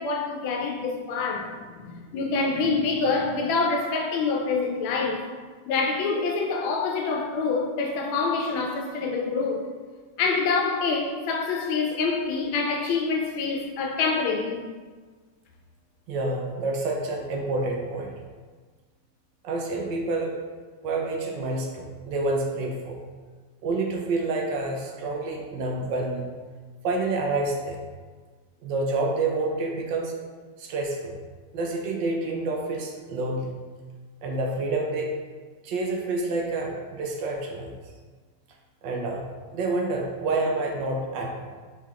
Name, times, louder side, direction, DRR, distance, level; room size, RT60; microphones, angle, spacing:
voice 1, 0.0-5.2 5.7-9.6 10.2-14.6, left 4 dB, 85° left, 1.4 m, -26 dB
voice 2, 16.1-18.1 19.4-20.3 20.8-23.0 23.6-26.2 26.8-27.8 28.6-30.2 30.6-31.2 31.5-33.6 34.2-35.1 35.6-37.7 38.8-39.3 39.5-41.5, right 2 dB, 75° right, 1.2 m, -28 dB
4.5 x 3.4 x 2.3 m
omnidirectional pair, 2.1 m